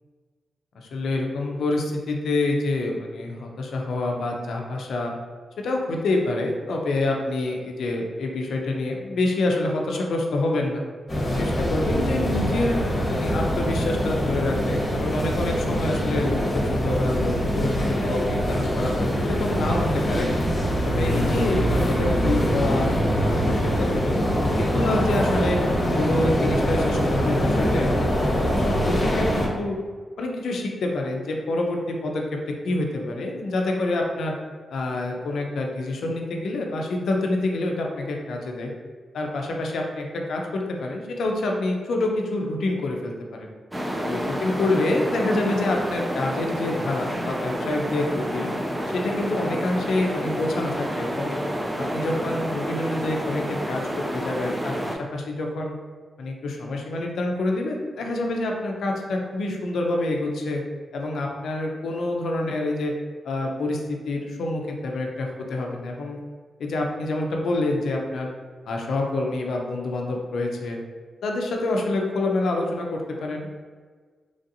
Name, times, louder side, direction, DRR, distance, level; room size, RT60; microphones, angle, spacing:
voice 1, 0.8-5.1 5.6-10.8 11.4-20.3 20.8-22.9 23.2-25.6 25.9-28.3 28.5-29.8 30.2-32.2 32.6-34.3 34.7-38.7 39.1-43.5 44.0-48.5 48.9-51.4 51.8-55.7 56.2-60.6 60.9-62.9 63.2-66.2 66.6-68.3 68.7-70.8 71.2-73.5, left 2 dB, 85° left, 1 dB, 0.4 m, -27 dB
sound 1, 11.1-29.5, equal, 35° left, 0.9 m, -23 dB
sound 2, 43.7-54.9, equal, 15° right, 0.4 m, -29 dB
3.1 x 2.7 x 2.6 m, 1.5 s
cardioid pair, 95°, 0 cm